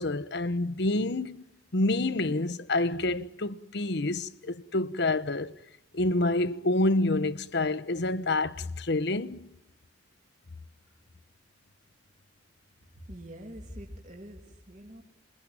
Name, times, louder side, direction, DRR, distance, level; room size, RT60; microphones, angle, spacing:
voice 1, 0.0-1.4 1.7-5.5 5.9-9.5, left 2 dB, 60° left, 1.1 m, -28 dB
voice 2, 12.9-15.0, equal, 40° right, 2.9 m, -44 dB
28.0 x 22.5 x 8.9 m
head